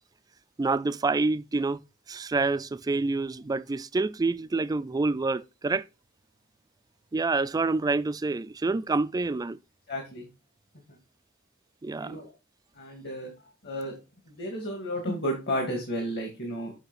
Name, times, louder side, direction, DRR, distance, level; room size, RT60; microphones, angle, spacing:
voice 1, 0.6-1.8 2.1-5.8 7.1-9.6 11.8-12.2, right 3 dB, 20° right, 0.3 m, -27 dB
voice 2, 9.9-10.3 11.9-12.3 12.8-13.3 13.6-14.0 14.3-16.7, equal, 55° left, 2.1 m, -32 dB
8.0 x 5.5 x 4.1 m
head